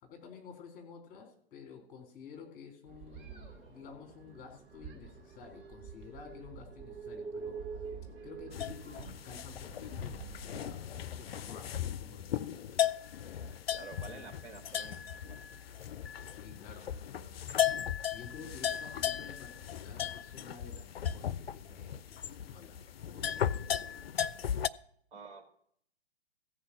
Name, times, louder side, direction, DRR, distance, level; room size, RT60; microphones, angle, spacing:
voice 1, 0.0-7.8 8.2-13.0 14.1-14.3 14.8-15.0 15.5-15.8 16.3-17.4 18.1-22.8 23.1-24.1, left 6 dB, 25° left, 2 dB, 2.8 m, -51 dB
sound 1, 2.9-10.8, right 6 dB, 25° right, 2.0 m, -46 dB
sound 2, 8.5-24.7, left 10 dB, 65° left, 0.5 m, -36 dB
voice 2, 13.7-15.4 25.1-25.5, right 4 dB, 50° right, 2 dB, 2.9 m, -49 dB
15.0 x 5.0 x 7.0 m, 0.65 s
figure-of-eight pair, 120°, 33 cm